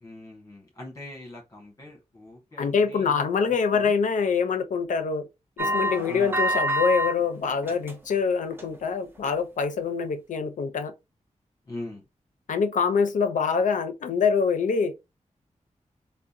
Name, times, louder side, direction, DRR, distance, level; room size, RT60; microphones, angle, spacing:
voice 1, 0.0-3.9 6.1-6.3 11.6-12.0, left 1 dB, 25° left, 1.2 m, -42 dB
voice 2, 2.6-5.3 5.6-10.9 12.5-14.9, left 5 dB, 80° left, 0.4 m, -25 dB
sound 1, 5.6-7.1 7.5-8.2 8.5-8.8 9.3-9.4, equal, 15° right, 0.6 m, -26 dB
3.6 x 2.1 x 2.5 m
wide cardioid pair, 170°, 13 cm